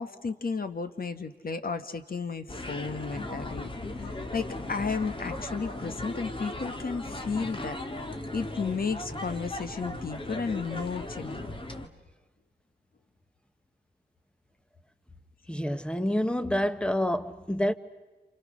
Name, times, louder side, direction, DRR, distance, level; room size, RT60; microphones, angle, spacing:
voice 1, 0.0-3.7 4.3-7.8 8.3-11.5, left 5 dB, 60° left, 1.6 m, -33 dB
sound 1, 2.5-11.9, left 2 dB, 30° left, 1.9 m, -37 dB
voice 2, 15.5-17.7, left 1 dB, 5° left, 1.1 m, -28 dB
29.5 x 28.0 x 6.4 m
wide cardioid pair, 100°, 17 cm